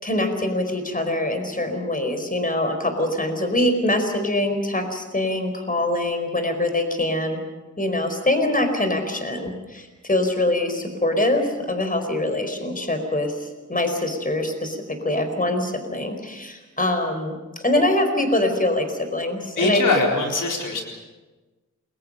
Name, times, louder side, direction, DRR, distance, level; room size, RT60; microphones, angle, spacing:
voice 1, 0.0-7.4 7.8-19.9, left 1 dB, 25° left, 6 dB, 4.8 m, -24 dB
voice 2, 19.6-20.8, left 3 dB, 85° left, 0 dB, 4.4 m, -22 dB
29.0 x 22.0 x 5.6 m, 1.2 s
wide cardioid pair, 70°, 31 cm